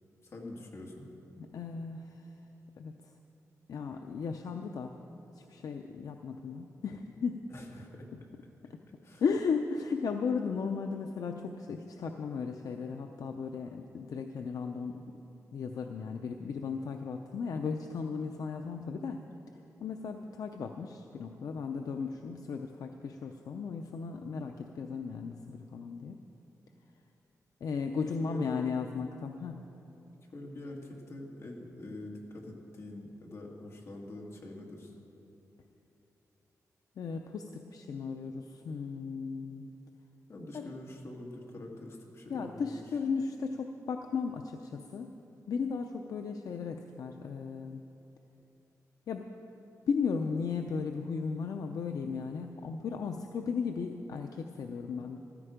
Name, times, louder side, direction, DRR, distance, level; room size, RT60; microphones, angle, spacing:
voice 1, 0.2-1.0 7.5-8.1 9.0-9.2 28.3-28.6 30.3-34.9 40.3-42.8, left 2 dB, 50° left, 0 dB, 2.0 m, -44 dB
voice 2, 1.4-2.3 2.8-3.1 3.7-5.0 5.3-7.4 8.7-8.8 9.2-15.2 15.5-19.3 19.8-26.2 27.6-29.6 37.0-39.7 40.5-40.7 42.3-45.1 45.5-47.8 49.1-49.3 49.9-55.2, left 5 dB, 70° left, 5 dB, 0.6 m, -35 dB
14.5 x 13.5 x 5.1 m, 3.0 s
wide cardioid pair, 150°, 6 cm